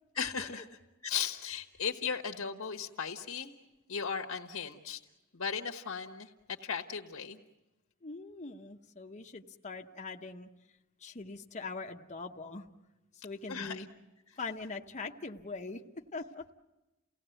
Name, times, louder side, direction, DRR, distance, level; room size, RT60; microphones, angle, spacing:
voice 1, 0.1-0.7 1.0-3.5 3.9-5.0 5.3-6.3 6.6-7.4 13.5-13.8, left 6 dB, 85° left, 3 dB, 1.3 m, -36 dB
voice 2, 8.0-10.5 11.0-12.7 13.1-13.9 14.4-15.8 16.1-16.4, left 3 dB, 35° left, 3 dB, 0.8 m, -42 dB
29.5 x 17.5 x 7.9 m, 1.0 s
head